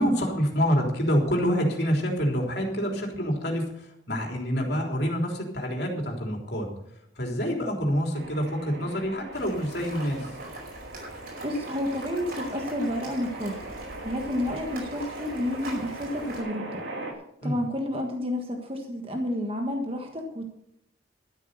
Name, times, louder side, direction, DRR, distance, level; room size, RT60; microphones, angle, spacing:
voice 1, 0.0-6.7 7.2-10.4 17.4-17.6, equal, 60° left, 1 dB, 3.5 m, -27 dB
sound 1, 8.1-17.1, right 2 dB, 80° right, 2.8 m, -40 dB
sound 2, 9.3-16.4, right 1 dB, 55° right, 5.1 m, -43 dB
voice 2, 11.4-13.6 14.0-16.8 17.4-20.5, left 1 dB, 30° right, 3 dB, 1.4 m, -30 dB
13.0 x 8.4 x 6.8 m, 0.75 s
head